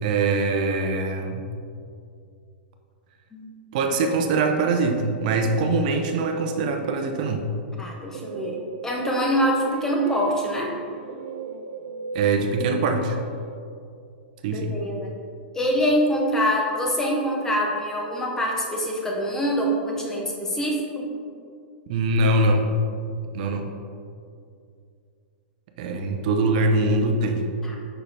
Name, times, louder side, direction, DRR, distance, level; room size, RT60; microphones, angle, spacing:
voice 1, 0.0-1.4 3.7-7.5 12.1-13.2 14.4-14.8 21.9-22.7 23.3-23.8 25.8-27.5, right 2 dB, 45° right, 5 dB, 0.6 m, -23 dB
Guitar, 4.8-7.4 8.1-13.6, right 3 dB, 80° right, 0.3 m, -36 dB
voice 2, 7.8-8.6 8.8-10.7 14.5-15.2 15.5-21.1 27.6-27.8, equal, 10° left, -1 dB, 0.7 m, -25 dB
6.3 x 5.7 x 3.3 m, 2.4 s
supercardioid pair, 165°, 6 cm